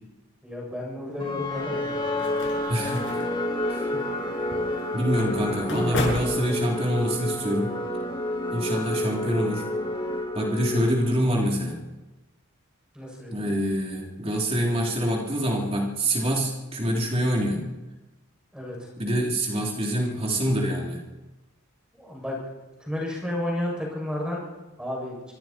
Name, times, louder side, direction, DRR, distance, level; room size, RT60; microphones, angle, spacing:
voice 1, 0.4-2.3 3.9-4.0 5.3-6.4 12.9-13.5 18.5-18.9 22.0-22.4 22.9-24.4 24.8-25.2, left 1 dB, 5° right, -2 dB, 7.3 m, -32 dB
sound 1, 1.2-11.4, left 1 dB, 20° left, 2.7 m, -29 dB
sound 2, 1.7-7.1, left 1 dB, 55° left, 6.9 m, -36 dB
voice 2, 2.7-3.2 3.7-3.9 4.9-7.8 8.5-9.6 10.3-11.8 13.3-17.6 19.0-21.0, equal, 25° right, -1 dB, 3.6 m, -26 dB
26.0 x 24.5 x 4.6 m, 1.1 s
head